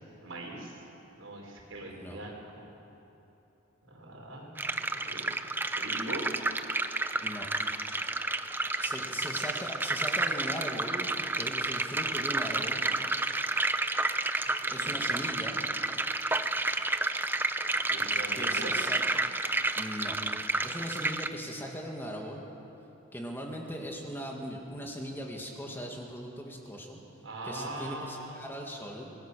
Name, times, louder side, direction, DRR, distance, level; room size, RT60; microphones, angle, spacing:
voice 1, 0.2-0.8 1.2-2.7 3.9-5.3 5.8-6.3 8.9-9.3 14.6-15.0 17.9-18.7 27.2-28.4, right 2 dB, 80° right, -1 dB, 5.2 m, -41 dB
voice 2, 1.8-2.2 7.2-7.5 8.8-12.8 14.7-15.6 18.3-19.0 19.7-20.2 20.6-22.5 23.1-27.0 27.4-29.1, equal, 10° left, 0 dB, 2.1 m, -39 dB
sound 1, 4.6-21.3, right 2 dB, 10° right, 0.6 m, -31 dB
25.0 x 19.5 x 6.9 m, 2.9 s
head